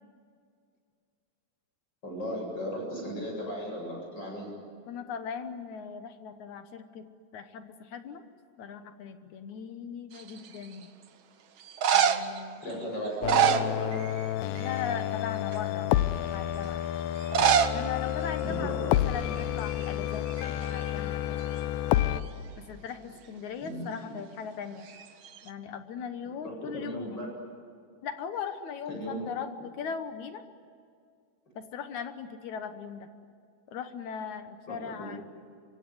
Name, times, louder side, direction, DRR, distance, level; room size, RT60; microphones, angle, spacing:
voice 1, 2.0-4.5 12.6-14.0 18.4-19.1 23.6-23.9 26.4-27.3 28.9-29.3 34.7-35.1, equal, 30° left, 0 dB, 8.8 m, -36 dB
voice 2, 4.9-7.0 7.3-8.2 8.6-10.9 11.9-12.9 14.6-16.0 16.2-16.8 17.7-20.3 20.6-21.4 22.7-24.9 25.4-27.2 28.0-30.4 31.5-33.1 33.7-35.2, left 7 dB, 65° left, 8 dB, 2.3 m, -39 dB
sound 1, 10.1-10.6 11.6-12.4 13.0-14.3 14.5-14.9 15.5-15.6 17.2-17.8 18.1-18.2 18.3-18.4 19.2-19.4 19.7-20.9 24.9-25.5, right 8 dB, 85° right, 1.1 m, -26 dB
sound 2, 13.2-22.2, left 12 dB, 90° left, 2.6 m, -30 dB
25.0 x 24.0 x 9.6 m, 2.3 s
omnidirectional pair, 4.0 m